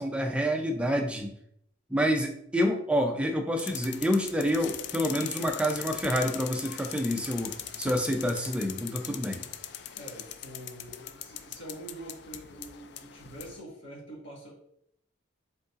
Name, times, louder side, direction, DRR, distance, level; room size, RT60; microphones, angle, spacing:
voice 1, 0.0-1.3 1.9-9.4, equal, 5° right, 3 dB, 0.4 m, -28 dB
sound 1, 3.6-13.6, left 10 dB, 60° left, 0.3 m, -40 dB
voice 2, 9.9-14.5, right 1 dB, 75° left, -4 dB, 1.6 m, -45 dB
5.2 x 3.8 x 2.5 m, 0.71 s
head